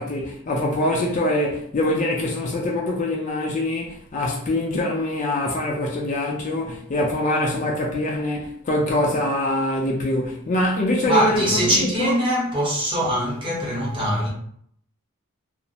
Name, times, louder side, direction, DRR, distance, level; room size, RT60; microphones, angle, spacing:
voice 1, 0.0-12.2, left 1 dB, 35° left, 0.3 m, -24 dB
voice 2, 11.1-14.3, equal, 20° right, 0.7 m, -22 dB
2.3 x 2.0 x 2.7 m
head